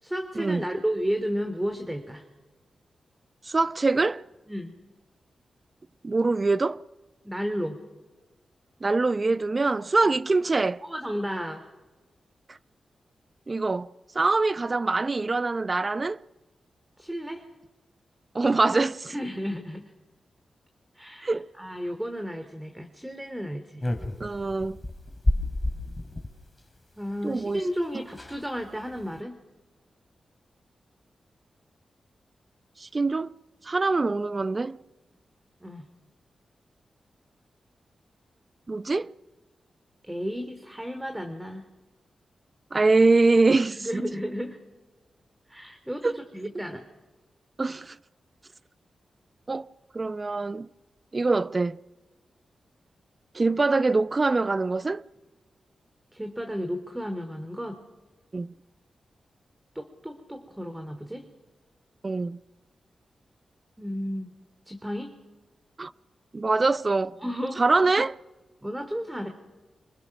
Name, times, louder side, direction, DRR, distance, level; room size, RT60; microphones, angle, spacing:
voice 1, 0.0-2.2 4.5-4.7 7.2-7.8 10.8-11.6 17.0-17.4 19.1-19.8 20.9-23.8 25.3-25.4 27.0-29.4 35.6-35.9 40.0-41.6 43.8-44.6 45.5-46.8 56.1-57.8 59.7-61.3 63.8-64.3 64.6-65.1 67.2-67.6 68.6-69.3, equal, 10° right, 3.1 m, -33 dB
voice 2, 3.5-4.2 6.0-6.8 8.8-10.8 13.5-16.2 18.3-19.1 21.2-21.5 24.2-24.8 27.2-27.7 32.8-33.3 33.6-34.8 38.7-39.1 42.7-44.0 46.0-46.1 47.6-48.0 49.5-49.7 49.9-50.7 51.1-51.8 53.3-55.0 58.3-58.5 62.0-62.4 65.8-65.9 66.3-67.2 67.6-68.2, right 3 dB, 40° right, 0.7 m, -24 dB
sound 1, 23.8-26.3 27.5-27.6 27.8-27.9 28.1-28.4 28.9-29.2, left 1 dB, 25° left, 3.5 m, -30 dB
26.0 x 22.0 x 6.1 m
cardioid pair, 50°, 0 cm